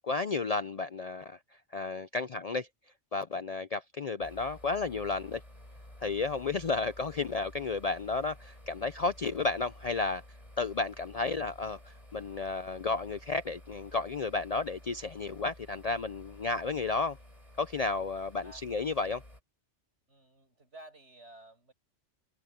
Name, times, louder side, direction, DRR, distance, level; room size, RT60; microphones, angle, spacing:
voice 1, 0.0-1.4 1.7-2.7 3.1-5.4 6.0-10.2 10.6-17.2 17.6-19.2, left 3 dB, 45° left, 0.5 m, -32 dB
sound 1, 4.2-19.4, left 1 dB, 30° left, 4.6 m, -52 dB
voice 2, 20.1-21.7, right 1 dB, 70° right, 6.1 m, -53 dB
omnidirectional pair, 1.2 m